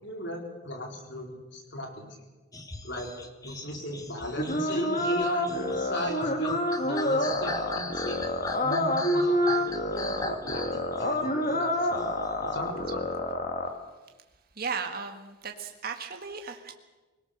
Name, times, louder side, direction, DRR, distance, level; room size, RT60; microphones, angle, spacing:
voice 1, 0.0-2.2 2.8-3.1 3.4-8.3 8.6-12.1 12.4-13.1, left 1 dB, 60° left, 2 dB, 4.4 m, -37 dB
sound 1, 2.5-12.6, left 2 dB, 15° left, 1.4 m, -40 dB
sound 2, 4.4-13.7, left 1 dB, 40° left, 2.1 m, -28 dB
voice 2, 14.5-16.7, right 5 dB, 45° right, 4 dB, 1.7 m, -35 dB
25.0 x 18.0 x 6.8 m, 1.2 s
head